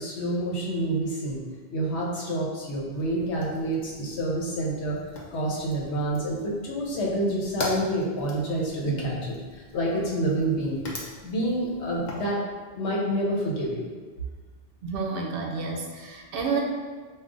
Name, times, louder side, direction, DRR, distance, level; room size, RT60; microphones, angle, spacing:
voice 1, 0.0-1.4 1.7-5.0 5.3-12.4 12.7-13.9, right 1 dB, 85° left, -3 dB, 1.1 m, -28 dB
Fire, 2.9-12.3, left 2 dB, 50° left, 0.7 m, -41 dB
voice 2, 14.8-16.6, right 4 dB, 65° right, 1 dB, 0.7 m, -30 dB
4.7 x 2.4 x 2.6 m, 1.5 s
omnidirectional pair, 1.1 m